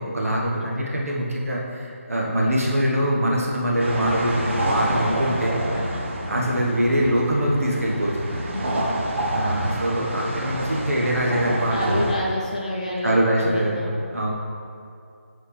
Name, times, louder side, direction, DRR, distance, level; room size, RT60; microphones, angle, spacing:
voice 1, 0.0-5.6 6.3-8.4 9.3-12.1 13.0-13.8 14.1-14.3, equal, 80° right, -4 dB, 1.4 m, -23 dB
voice 2, 0.5-1.0 4.7-6.1 8.4-8.9 11.7-13.9, left 1 dB, 30° left, -3 dB, 0.8 m, -31 dB
sound 1, 3.8-12.1, right 1 dB, 55° right, 1.0 m, -27 dB
7.3 x 4.1 x 3.3 m, 2.4 s
figure-of-eight pair, 170°, 8 cm